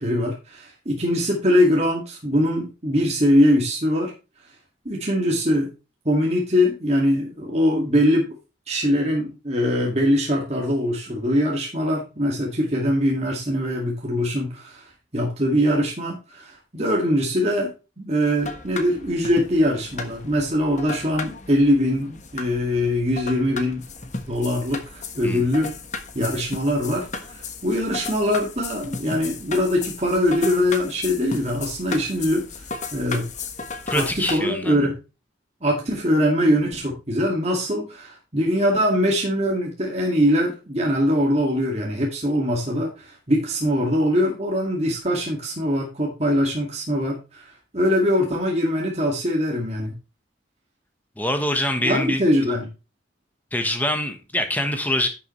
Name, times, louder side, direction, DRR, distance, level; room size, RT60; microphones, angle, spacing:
voice 1, 0.0-4.1 4.9-5.7 6.1-8.3 8.7-14.8 15.1-23.8 24.3-25.7 26.1-32.6 32.9-33.3 33.9-35.0 35.6-50.0 51.8-52.7, equal, 35° right, 2.2 m, -22 dB
sound 1, 18.4-34.4, left 4 dB, 40° left, 1.4 m, -35 dB
voice 2, 33.9-34.8 51.2-52.2 53.5-55.1, left 1 dB, 10° left, 1.2 m, -24 dB
11.0 x 7.0 x 3.2 m
head